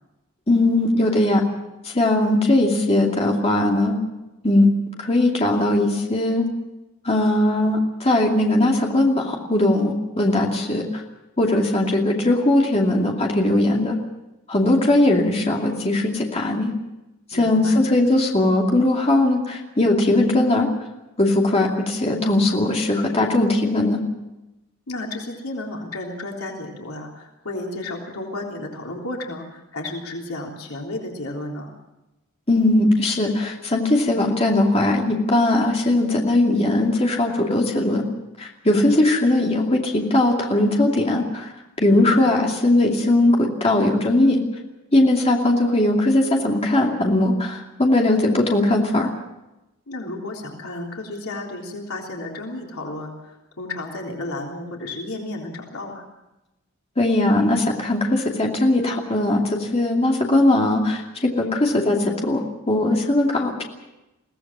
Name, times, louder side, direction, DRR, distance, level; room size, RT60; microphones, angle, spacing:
voice 1, 0.5-1.4 1.8-4.0 4.4-4.7 5.0-6.5 7.0-11.0 11.4-14.0 14.5-16.7 17.3-20.7 21.2-24.0 32.5-38.0 38.4-41.5 41.8-44.4 44.9-49.1 57.0-62.4 62.7-63.6, left 1 dB, 30° left, 0 dB, 2.6 m, -19 dB
voice 2, 17.3-17.8 24.9-31.7 41.9-42.3 49.9-56.0, left 2 dB, 75° left, -1 dB, 3.6 m, -32 dB
22.5 x 17.5 x 7.5 m, 0.98 s
head